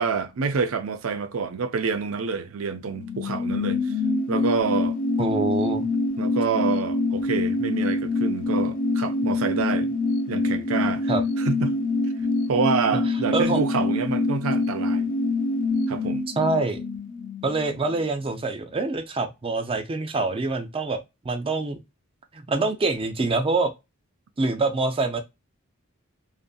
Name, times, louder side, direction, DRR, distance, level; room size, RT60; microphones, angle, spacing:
voice 1, 0.0-3.9 4.3-5.0 6.2-9.9 10.3-11.1 11.4-11.8 12.5-15.1 15.9-16.2, right 5 dB, 80° right, 0.5 m, -27 dB
sound 1, 2.8-18.0 18.3-18.4, left 2 dB, 40° left, 0.5 m, -25 dB
voice 2, 5.2-5.9 11.1-11.2 13.3-13.6 16.4-16.8 17.4-21.8 22.3-23.7 24.4-25.2, right 3 dB, 25° right, 0.5 m, -25 dB
2.6 x 2.6 x 2.2 m
head